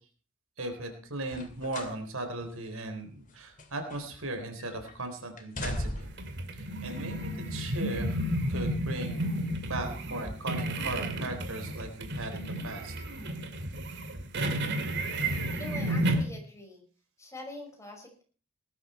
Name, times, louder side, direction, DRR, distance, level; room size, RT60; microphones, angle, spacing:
voice 1, 0.6-6.1 6.5-9.4 9.7-12.9, right 2 dB, 85° right, 6 dB, 4.1 m, -38 dB
sound 1, 1.2-2.0 2.4-2.5 3.3-4.3 4.6-5.0 5.4-6.3 7.2-7.3, left 1 dB, 40° left, 2.6 m, -38 dB
sound 2, 6.0-16.2, right 1 dB, 55° right, 2.5 m, -32 dB
voice 2, 15.5-16.9 17.2-18.2, left 1 dB, 15° left, 2 dB, 5.6 m, -44 dB
18.5 x 13.0 x 4.5 m, 0.39 s
head